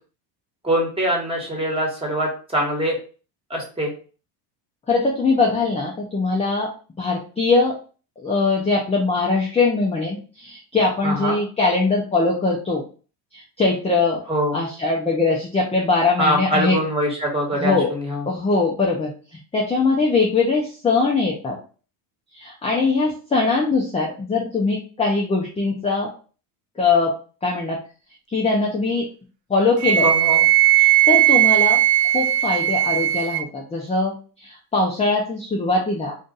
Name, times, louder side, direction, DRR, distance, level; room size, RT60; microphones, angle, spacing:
voice 1, 0.6-2.9 3.5-3.9 11.0-11.4 14.3-14.6 16.2-18.2 30.0-30.4, equal, 10° right, -1 dB, 1.4 m, -23 dB
voice 2, 4.9-6.7 7.0-7.8 8.2-12.8 13.3-14.2 14.5-16.8 17.5-17.9 18.3-21.6 22.3-26.1 26.8-27.1 27.4-27.8 28.3-29.1 29.5-30.1 30.8-31.8 32.1-34.2 34.4-36.2, left 3 dB, 15° left, -2 dB, 0.5 m, -21 dB
Wind instrument woodwind instrument, 29.8-33.5, right 14 dB, 40° right, 0.4 m, -17 dB
2.5 x 2.5 x 3.9 m, 0.38 s
supercardioid pair, 105°, 50 cm